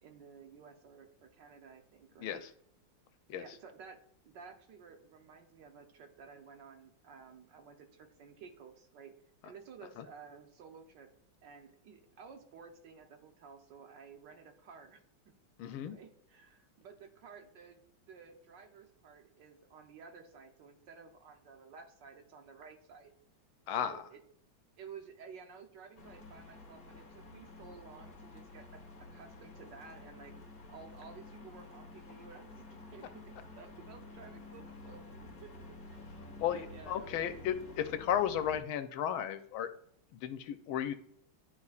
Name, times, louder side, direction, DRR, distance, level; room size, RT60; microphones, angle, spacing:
voice 1, 0.0-2.4 3.3-9.1 9.4-11.1 11.4-15.0 15.6-23.1 23.8-24.2 24.8-28.8 29.1-30.3 30.7-35.0 35.4-35.5 35.9-37.1, right 5 dB, 65° right, 5 dB, 1.3 m, -54 dB
voice 2, 2.2-2.5 3.3-3.4 10.0-10.1 15.6-16.0 23.7-24.0 36.4-39.7 40.1-40.9, left 10 dB, 80° left, 9 dB, 1.4 m, -34 dB
sound 1, 26.0-38.6, left 2 dB, 35° left, 1.0 m, -51 dB
11.0 x 4.0 x 2.4 m, 0.68 s
omnidirectional pair, 2.3 m